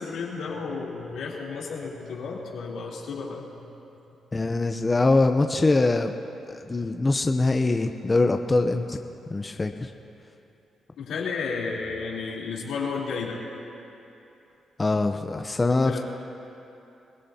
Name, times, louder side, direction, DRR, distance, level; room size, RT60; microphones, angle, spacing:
voice 1, 0.0-3.7 11.0-13.4 15.8-16.0, left 4 dB, 85° left, -5 dB, 3.4 m, -32 dB
voice 2, 4.3-6.1 6.5-9.0 9.3-9.9 14.8-16.0, left 2 dB, 25° left, 5 dB, 0.6 m, -23 dB
26.5 x 17.5 x 2.8 m, 2.8 s
cardioid pair, 85°, 0 cm